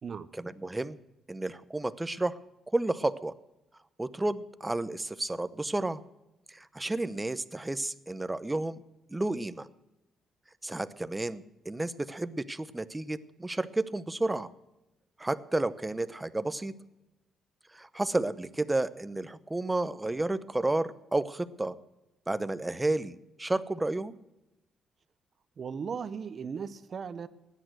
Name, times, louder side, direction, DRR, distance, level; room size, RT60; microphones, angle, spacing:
voice 1, 0.4-1.0 1.3-2.4 2.7-3.3 4.0-6.0 6.5-8.8 9.1-9.7 10.6-14.5 15.2-16.7 17.7-21.7 22.3-24.2, right 2 dB, 15° right, 14 dB, 0.8 m, -31 dB
voice 2, 25.6-27.3, right 6 dB, 50° right, 14 dB, 0.9 m, -37 dB
16.0 x 10.5 x 6.2 m, 0.95 s
cardioid pair, 90°, 0 cm